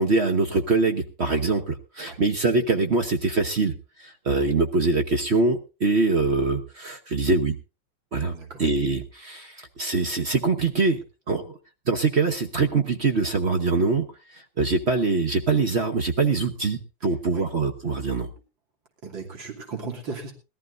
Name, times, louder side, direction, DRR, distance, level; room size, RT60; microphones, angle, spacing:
voice 1, 0.0-3.7 4.0-7.5 8.1-8.3 8.6-11.5 11.9-14.1 14.3-18.3, right 3 dB, 45° right, 6 dB, 1.0 m, -23 dB
voice 2, 8.3-8.6 17.3-17.4 19.0-20.3, right 4 dB, 80° right, 1 dB, 3.4 m, -36 dB
21.0 x 13.5 x 2.6 m, 0.30 s
omnidirectional pair, 2.1 m